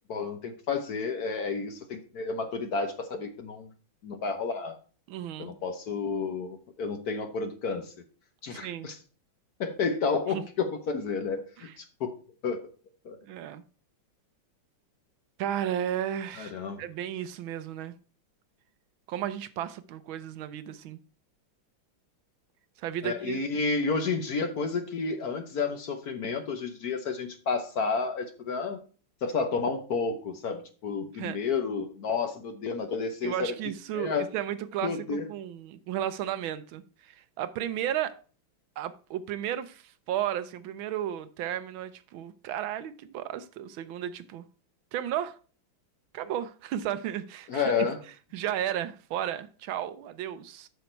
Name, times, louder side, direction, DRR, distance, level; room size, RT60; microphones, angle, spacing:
voice 1, 0.1-3.7 4.0-4.8 5.4-7.9 8.4-9.0 9.6-12.2 12.4-12.6 13.0-13.2 16.4-16.8 23.0-28.8 29.2-33.5 33.9-34.2 34.8-35.3 47.5-48.0, left 4 dB, 60° left, 1.1 m, -31 dB
voice 2, 5.1-5.5 8.5-8.9 10.3-10.4 11.6-11.7 13.2-13.6 15.4-17.9 19.1-21.0 22.8-23.4 31.1-31.4 33.2-38.2 38.8-44.4 44.9-45.4 46.1-47.6 48.3-50.7, right 11 dB, 75° right, 1.4 m, -34 dB
8.2 x 6.0 x 4.4 m
omnidirectional pair, 2.3 m